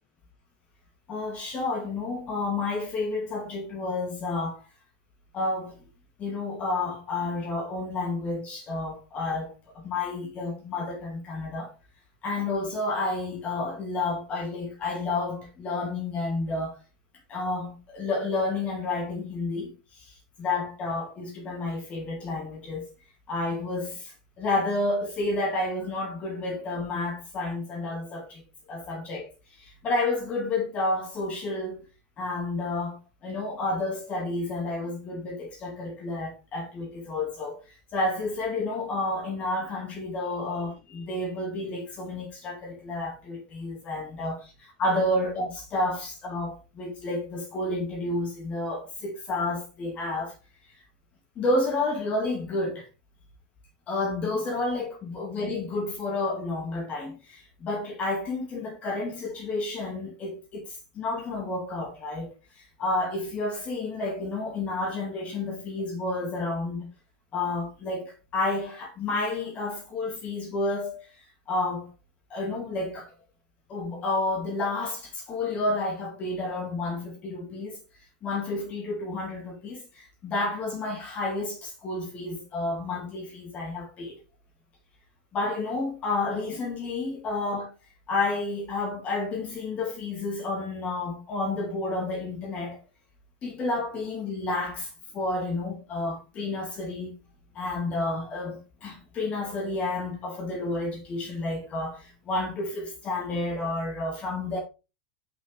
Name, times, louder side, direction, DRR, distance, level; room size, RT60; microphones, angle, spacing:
voice 1, 1.1-4.6 5.3-5.8 6.2-9.5 9.8-11.7 12.2-16.8 17.3-19.7 20.0-20.1 20.4-22.9 23.3-28.4 28.7-29.3 29.6-31.8 32.2-37.6 37.9-50.3 51.4-52.9 53.9-62.3 62.8-66.9 67.3-71.0 71.5-71.9 72.3-73.1 73.7-77.8 78.2-84.2 85.3-87.7 88.1-92.8 93.4-97.1 97.5-104.6, left 2 dB, 35° left, 2.1 m, -30 dB
6.1 x 5.5 x 3.3 m
hypercardioid pair, 90°, 4 cm